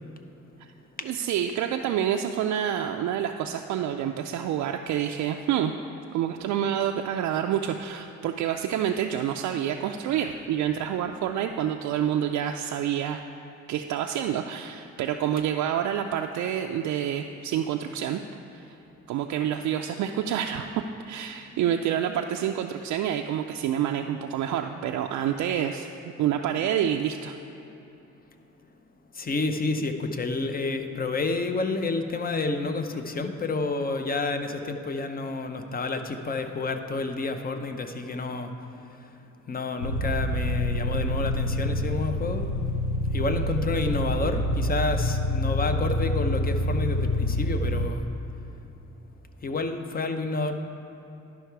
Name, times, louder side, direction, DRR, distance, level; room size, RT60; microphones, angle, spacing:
voice 1, 1.0-5.8 6.1-13.2 13.7-18.2 18.5-18.8 19.1-20.7 21.1-25.9 26.2-27.4, right 10 dB, 70° right, 4 dB, 0.4 m, -28 dB
voice 2, 29.1-39.1 39.5-42.5 43.1-48.1 49.4-50.6, left 3 dB, 30° left, 7 dB, 0.7 m, -29 dB
sound 1, 39.8-47.9, left 1 dB, 90° left, 0.9 m, -27 dB
11.5 x 5.6 x 4.6 m, 2.9 s
cardioid pair, 90°, 30 cm